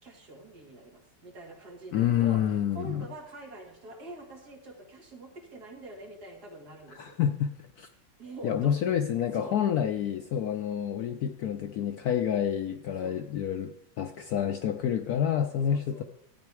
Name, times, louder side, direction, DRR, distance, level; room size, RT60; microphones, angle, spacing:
voice 1, 0.0-2.4 2.7-7.2 8.2-8.7 9.3-9.6 13.0-13.3 15.7-16.0, right 2 dB, 55° right, 0 dB, 2.7 m, -45 dB
voice 2, 1.9-3.1 6.9-7.9 8.4-16.0, left 9 dB, 65° left, 7 dB, 1.0 m, -28 dB
12.5 x 8.6 x 4.8 m, 0.70 s
omnidirectional pair, 2.1 m